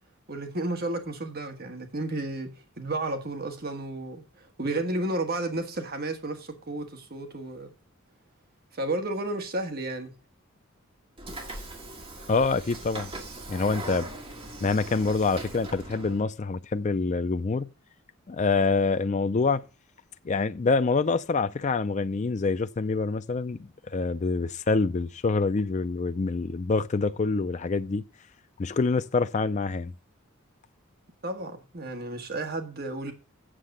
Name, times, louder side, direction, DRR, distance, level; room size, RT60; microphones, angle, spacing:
voice 1, 0.3-2.5 2.8-7.7 8.7-10.1 31.2-33.1, right 2 dB, 45° right, 1.4 m, -32 dB
Train / Sliding door, 11.2-16.2, right 2 dB, 25° right, 1.9 m, -40 dB
voice 2, 12.3-13.1 13.5-14.1 14.6-17.7 18.3-19.6 20.2-28.0 28.6-29.9, left 4 dB, 35° left, 0.4 m, -26 dB
7.6 x 7.1 x 6.5 m
head